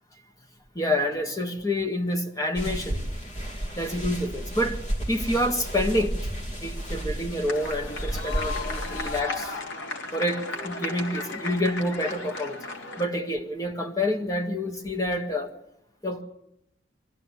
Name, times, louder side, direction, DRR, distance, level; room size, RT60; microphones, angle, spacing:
voice 1, 0.8-3.0 3.8-6.2 6.6-9.6 10.1-12.6 13.0-15.5 16.0-16.2, left 1 dB, 20° left, 1.8 m, -28 dB
sound 1, 2.5-9.2, equal, 35° left, 3.0 m, -32 dB
sound 2, 7.5-13.1, left 3 dB, 85° left, 3.3 m, -35 dB
23.5 x 15.5 x 9.8 m
head